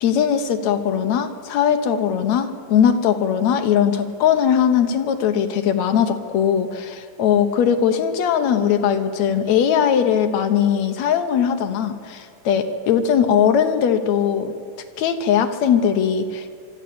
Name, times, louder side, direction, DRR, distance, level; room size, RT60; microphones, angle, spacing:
voice 1, 0.0-14.5 15.0-16.5, left 8 dB, 65° left, 7 dB, 1.9 m, -19 dB
25.0 x 12.5 x 8.6 m, 2.2 s
omnidirectional pair, 4.1 m